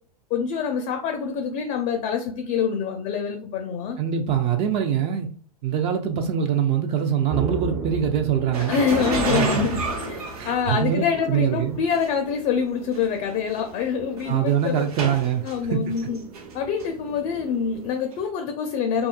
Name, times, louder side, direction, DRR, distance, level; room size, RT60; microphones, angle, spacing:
voice 1, 0.3-4.0 8.7-14.8 15.4-16.2 16.5-19.1, left 6 dB, 35° left, 0.4 m, -26 dB
voice 2, 4.0-5.3 5.6-8.8 9.3-9.6 10.3-11.8 14.2-16.1, right 8 dB, 30° right, 0.3 m, -24 dB
sound 1, 7.3-17.9, right 3 dB, 45° right, 1.0 m, -39 dB
sound 2, 8.5-11.1 11.9-12.1 12.9-13.0 13.3-13.6 14.2-15.6 16.0-16.5 16.8-16.9 18.1-18.2, right 2 dB, 70° right, 0.8 m, -28 dB
2.6 x 2.3 x 2.2 m
figure-of-eight pair, 95°, 20 cm